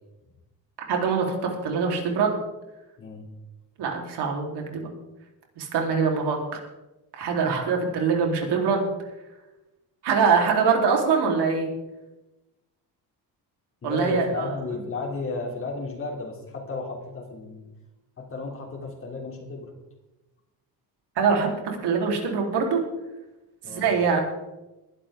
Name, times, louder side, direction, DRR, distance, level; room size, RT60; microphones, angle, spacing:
voice 1, 0.9-2.4 3.8-4.9 5.6-6.6 7.1-8.9 10.0-11.7 13.8-14.5 21.2-22.8 23.6-24.3, right 5 dB, 80° right, 1 dB, 4.0 m, -23 dB
voice 2, 13.8-17.7 18.2-19.7 23.6-23.9, left 3 dB, 30° left, 1 dB, 3.3 m, -33 dB
21.5 x 11.5 x 3.8 m, 1.0 s
cardioid pair, 160°, 40 cm